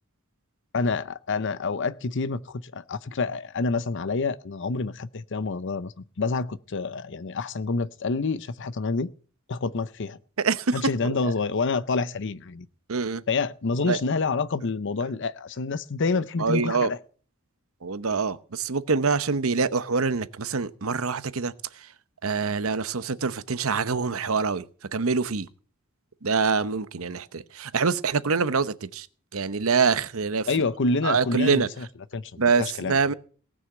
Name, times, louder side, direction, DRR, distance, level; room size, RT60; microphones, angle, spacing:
voice 1, 0.7-9.1 9.5-10.2 10.7-12.7 13.3-17.0 30.5-31.9 32.1-33.0, left 4 dB, 55° left, 0.6 m, -28 dB
voice 2, 10.4-11.3 12.9-13.2 13.8-14.0 16.4-16.9 17.8-21.9 22.2-24.6 24.9-25.5 26.2-29.1 29.3-30.5 31.0-31.7 32.4-33.1, right 5 dB, 70° right, 0.9 m, -25 dB
18.5 x 6.4 x 7.7 m
head